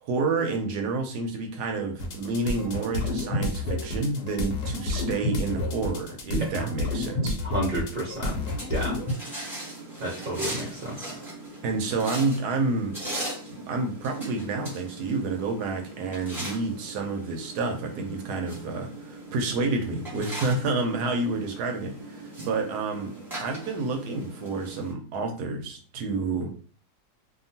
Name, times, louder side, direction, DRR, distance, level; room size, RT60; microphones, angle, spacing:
voice 1, 0.0-7.4 11.6-13.0 13.7-23.1 23.4-26.6, right 3 dB, 75° right, 5 dB, 1.1 m, -29 dB
sound 1, 2.0-9.1, left 2 dB, 70° left, 1.2 m, -30 dB
voice 2, 6.3-6.7 7.4-8.4 8.7-9.0 10.0-11.2, right 1 dB, 50° right, -4 dB, 0.7 m, -30 dB
sound 2, 8.3-24.9, right 1 dB, ahead, 1.0 m, -39 dB
2.8 x 2.4 x 2.6 m, 0.40 s
omnidirectional pair, 1.9 m